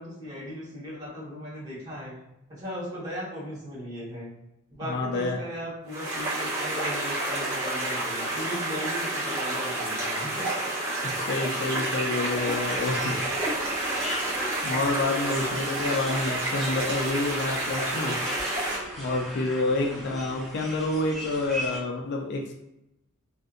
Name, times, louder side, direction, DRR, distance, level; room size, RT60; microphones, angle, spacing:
voice 1, 0.0-2.2 2.5-4.3 4.7-10.5 19.8-20.1, equal, 20° right, -8 dB, 1.2 m, -37 dB
voice 2, 4.9-5.4 11.0-13.2 14.6-18.2 19.0-22.5, left 2 dB, 55° left, 2 dB, 0.4 m, -28 dB
sound 1, 5.9-18.8, right 1 dB, 65° right, 1.0 m, -29 dB
sound 2, 12.3-21.8, equal, ahead, 0.5 m, -39 dB
2.6 x 2.5 x 2.4 m, 0.88 s
head